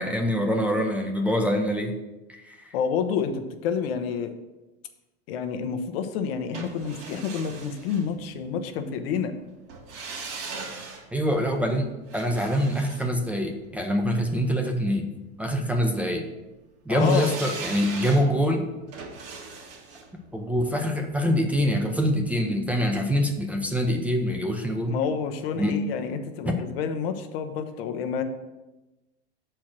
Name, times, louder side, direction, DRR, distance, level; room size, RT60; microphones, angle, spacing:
voice 1, 0.0-1.9 2.3-2.7 11.1-15.1 15.4-16.3 16.9-18.6 20.3-24.9 25.5-25.7 26.4-26.6, equal, 5° right, 2 dB, 0.6 m, -25 dB
voice 2, 2.7-4.3 5.3-9.3 16.9-17.3 24.9-28.2, left 6 dB, 70° left, 7 dB, 0.9 m, -29 dB
sound 1, 6.5-8.7 9.7-13.9 16.9-21.9 22.2-22.3, right 4 dB, 65° right, 2.1 m, -40 dB
6.3 x 4.5 x 6.0 m, 1.1 s
supercardioid pair, 125°, 32 cm